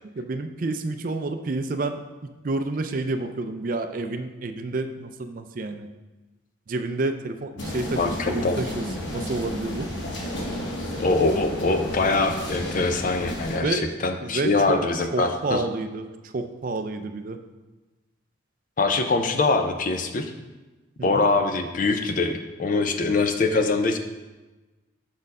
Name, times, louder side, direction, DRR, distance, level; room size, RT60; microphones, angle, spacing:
voice 1, 0.2-5.9 6.7-9.9 10.2-10.3 13.5-13.9 14.2-14.8 15.1-17.4 21.0-21.3, right 2 dB, 45° right, 8 dB, 0.4 m, -29 dB
sound 1, 7.6-13.6, left 1 dB, 65° left, 0.9 m, -32 dB
voice 2, 8.0-8.6 11.0-15.6 18.8-20.3 21.0-24.0, left 3 dB, 40° left, 6 dB, 0.5 m, -23 dB
6.0 x 4.4 x 5.3 m, 1.2 s
head